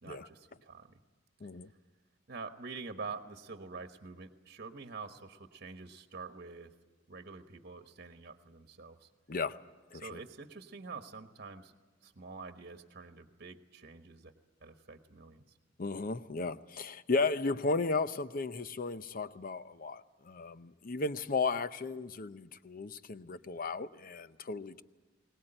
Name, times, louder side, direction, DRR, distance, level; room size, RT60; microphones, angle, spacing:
voice 1, 0.0-1.0 2.3-6.7 7.1-9.1 9.9-11.7 12.0-14.3 14.6-15.4, right 4 dB, 50° right, 1.2 m, -46 dB
voice 2, 9.9-10.2 15.8-24.8, left 3 dB, 45° left, 0.7 m, -35 dB
21.5 x 19.0 x 8.9 m
head